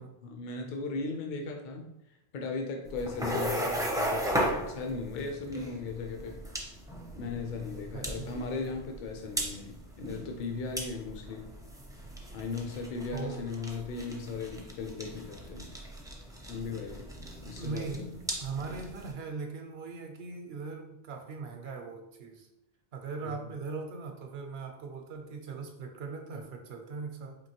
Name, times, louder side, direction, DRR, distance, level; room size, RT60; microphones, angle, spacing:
voice 1, 0.0-6.4 7.2-11.5 12.3-15.7 16.5-17.0 17.5-18.1 23.2-23.4, left 4 dB, 55° left, 3 dB, 0.6 m, -37 dB
sound 1, 2.8-19.1, equal, 5° right, 0.4 m, -37 dB
voice 2, 7.9-8.3 13.1-13.5 17.5-18.0 18.4-22.5 22.9-27.4, right 4 dB, 75° right, 4 dB, 0.8 m, -40 dB
4.5 x 2.8 x 2.8 m, 0.81 s
omnidirectional pair, 1.1 m